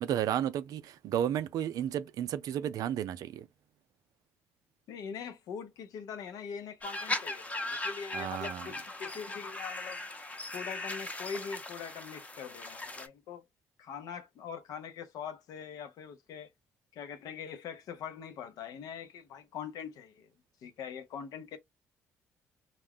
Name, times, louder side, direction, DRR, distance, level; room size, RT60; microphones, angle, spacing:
voice 1, 0.0-3.5 8.1-8.7, right 10 dB, 65° right, 0.4 m, -32 dB
voice 2, 4.9-10.0 10.5-13.4 13.8-16.5 16.9-20.3 20.6-21.6, left 7 dB, 70° left, 0.7 m, -42 dB
sound 1, 6.8-13.1, left 2 dB, 20° left, 0.8 m, -39 dB
2.4 x 2.1 x 3.5 m
supercardioid pair, 60°, 7 cm